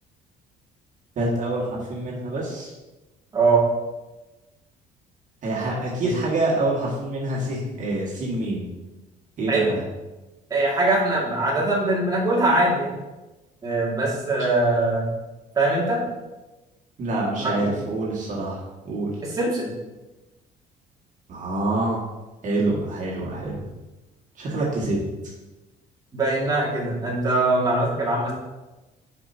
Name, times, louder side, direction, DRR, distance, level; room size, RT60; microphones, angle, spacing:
voice 1, 1.2-2.7 5.4-8.7 9.4-9.8 17.0-19.1 21.3-22.0 22.4-23.6 24.4-25.1, right 2 dB, 50° right, -5 dB, 1.9 m, -26 dB
voice 2, 3.3-3.6 6.0-6.1 9.5-9.7 10.5-12.9 13.6-15.1 15.6-16.0 17.4-17.7 19.2-19.7 26.1-28.3, right 2 dB, 20° right, -5 dB, 2.0 m, -22 dB
7.9 x 5.6 x 2.8 m, 1.1 s
cardioid pair, 110°, 17 cm